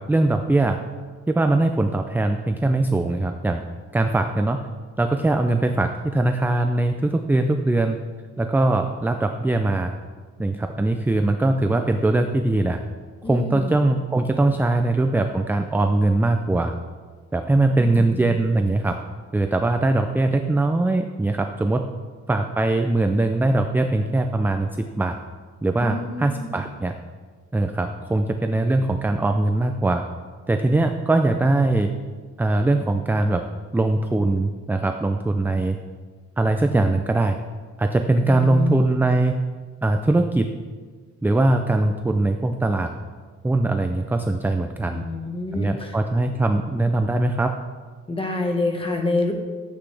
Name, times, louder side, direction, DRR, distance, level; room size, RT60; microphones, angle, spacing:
voice 1, 0.1-0.8 1.3-3.6 3.9-4.6 5.0-8.0 8.4-9.9 10.4-12.8 13.2-16.7 17.3-19.0 19.3-21.8 22.3-24.7 25.0-25.1 25.6-26.9 27.5-30.0 30.5-31.9 32.4-33.4 33.7-35.8 36.4-37.4 37.8-39.4 39.8-40.5 41.2-42.9 43.4-45.0 45.5-47.5, right 2 dB, 5° right, 6 dB, 0.3 m, -21 dB
voice 2, 13.2-13.9 17.8-18.4 25.8-26.6 38.3-38.9 44.9-46.0 48.1-49.3, left 3 dB, 15° left, 3 dB, 1.3 m, -27 dB
13.0 x 8.2 x 3.4 m, 1.5 s
cardioid pair, 140°, 31 cm